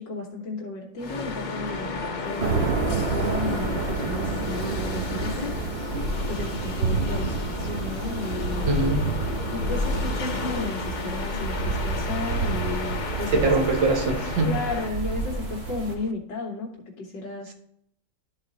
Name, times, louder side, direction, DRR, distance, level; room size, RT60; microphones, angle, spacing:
voice 1, 0.0-5.5 6.3-8.7 9.5-13.5 14.5-16.7 17.0-17.5, left 3 dB, 70° left, -2 dB, 1.9 m, -34 dB
sound 1, 1.0-16.1, left 3 dB, 85° left, 0.4 m, -33 dB
sound 2, 2.4-15.9, right 3 dB, 45° right, 1.0 m, -29 dB
voice 2, 8.7-9.1 13.3-14.5, right 2 dB, 80° right, 3 dB, 1.9 m, -23 dB
12.0 x 4.1 x 3.9 m, 0.71 s
omnidirectional pair, 2.0 m